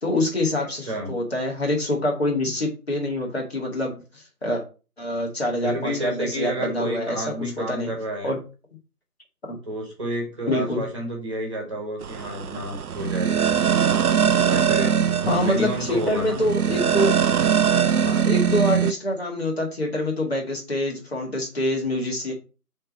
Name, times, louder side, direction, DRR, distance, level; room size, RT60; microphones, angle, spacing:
voice 1, 0.0-4.6 5.0-7.9 8.2-8.4 9.5-9.6 10.5-10.8 15.3-17.1 17.9-22.3, left 1 dB, 40° left, 0 dB, 2.3 m, -26 dB
voice 2, 0.6-1.1 5.6-8.3 9.6-13.5 14.5-16.5, right 1 dB, 20° right, -1 dB, 1.9 m, -30 dB
sound 1, 12.0-18.9, right 8 dB, 70° right, 0.5 m, -22 dB
6.3 x 3.8 x 5.4 m, 0.33 s
figure-of-eight pair, 170°, 46 cm